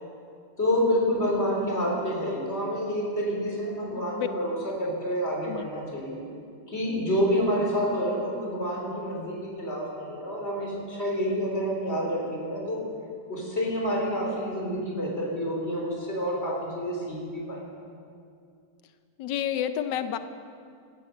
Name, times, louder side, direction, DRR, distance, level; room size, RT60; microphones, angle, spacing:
voice 1, 0.6-6.2 6.7-12.8 13.3-17.6, equal, 35° left, -2 dB, 4.1 m, -28 dB
voice 2, 3.9-4.3 5.5-5.7 19.2-20.2, left 10 dB, 85° left, 11 dB, 1.3 m, -30 dB
16.0 x 13.0 x 6.7 m, 2.4 s
omnidirectional pair, 1.9 m